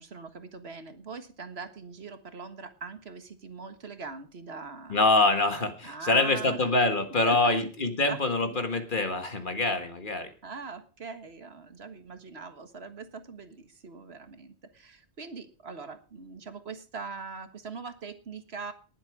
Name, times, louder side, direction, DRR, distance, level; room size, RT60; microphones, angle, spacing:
voice 1, 0.0-5.4 5.8-6.7 7.3-7.7 8.1-8.6 10.4-18.7, right 4 dB, 80° right, 9 dB, 1.8 m, -42 dB
voice 2, 4.9-10.3, left 2 dB, 55° left, 8 dB, 1.8 m, -25 dB
20.0 x 7.5 x 4.8 m, 0.36 s
omnidirectional pair, 1.0 m